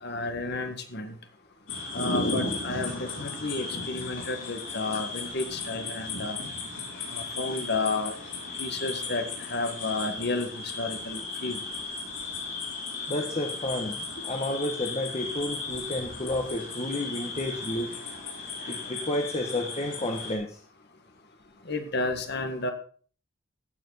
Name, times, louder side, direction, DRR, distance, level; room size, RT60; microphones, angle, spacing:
voice 1, 0.0-1.2 1.9-6.4 7.1-8.1 8.6-10.5 10.8-11.6 21.7-22.7, left 3 dB, 55° left, 6 dB, 1.8 m, -31 dB
sound 1, 1.7-20.4, left 3 dB, 70° left, 7.5 m, -35 dB
voice 2, 13.1-17.9 18.7-20.6, left 1 dB, 30° left, 3 dB, 1.5 m, -31 dB
16.5 x 7.6 x 4.2 m, 0.43 s
head